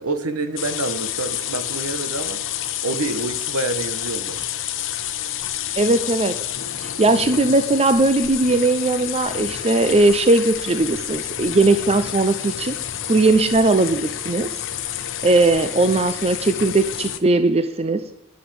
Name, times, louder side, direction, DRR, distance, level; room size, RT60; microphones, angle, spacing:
voice 1, 0.0-2.4 2.8-4.5, right 3 dB, 70° right, 9 dB, 1.4 m, -27 dB
sound 1, 0.6-17.2, left 11 dB, 60° left, 1.0 m, -29 dB
voice 2, 5.8-6.4 6.8-12.8 13.0-14.5 15.2-18.0, right 2 dB, 30° right, 11 dB, 0.6 m, -18 dB
11.0 x 8.4 x 7.8 m, 0.85 s
head